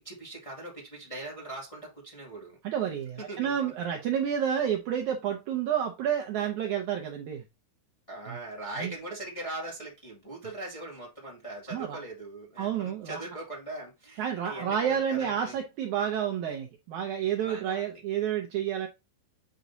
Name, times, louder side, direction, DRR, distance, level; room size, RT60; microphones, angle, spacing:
voice 1, 0.0-2.6 3.2-3.7 8.1-15.6 17.4-18.0, right 2 dB, 10° left, 1.6 m, -41 dB
voice 2, 2.6-7.4 8.8-8.9 11.7-12.0 12.6-13.2 14.2-18.9, right 9 dB, 75° right, 1.8 m, -30 dB
8.1 x 5.3 x 2.7 m
omnidirectional pair, 4.3 m